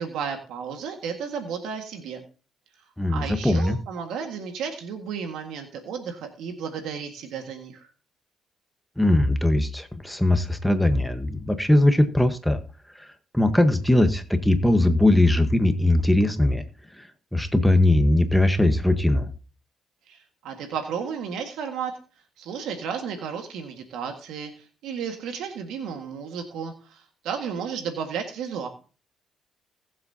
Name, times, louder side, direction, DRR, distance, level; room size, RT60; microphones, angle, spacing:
voice 1, 0.0-2.2 3.1-7.9 20.1-21.9 22.4-28.7, right 7 dB, 85° right, 4 dB, 1.8 m, -33 dB
voice 2, 3.0-3.8 9.0-12.6 13.0-13.1 13.3-16.6 17.0-17.1 17.3-19.3, left 1 dB, 5° left, 8 dB, 1.3 m, -20 dB
19.0 x 7.5 x 2.8 m, 0.36 s
cardioid pair, 90°, 0 cm